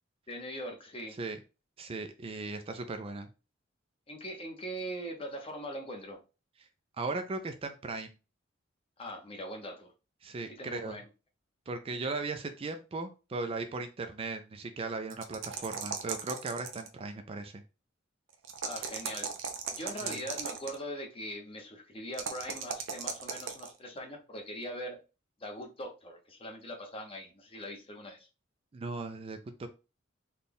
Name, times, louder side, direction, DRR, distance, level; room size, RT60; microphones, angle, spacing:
voice 1, 0.3-1.2 4.1-6.2 9.0-9.9 10.5-11.1 18.6-19.3 19.7-25.0 25.4-28.3, equal, 30° left, 0.9 m, -41 dB
voice 2, 1.8-3.3 7.0-8.1 10.2-11.0 11.7-17.6 20.0-20.2 28.7-29.7, right 3 dB, 30° right, 0.3 m, -37 dB
sound 1, 15.1-17.0 18.4-20.8 22.1-23.7, right 6 dB, 75° right, 0.6 m, -37 dB
4.1 x 2.3 x 3.4 m
head